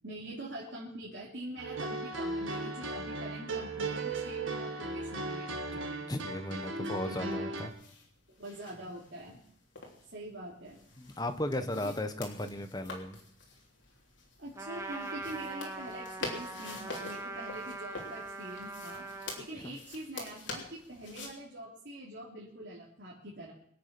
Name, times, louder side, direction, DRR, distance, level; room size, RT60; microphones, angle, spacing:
voice 1, 0.0-6.0 6.8-7.5 8.4-9.4 10.1-10.9 11.6-11.9 14.4-19.1 19.4-23.5, right 1 dB, 65° right, -7 dB, 3.2 m, -45 dB
sound 1, 1.6-7.7, right 2 dB, 85° right, 1.9 m, -36 dB
voice 2, 6.1-7.7 11.0-13.2 19.6-19.8, left 1 dB, 20° left, 8 dB, 1.1 m, -36 dB
sound 2, 7.6-21.3, left 3 dB, 75° left, 3.3 m, -46 dB
Trumpet, 14.5-19.5, right 2 dB, 15° right, 1.4 m, -41 dB
23.5 x 8.4 x 6.0 m, 0.67 s
head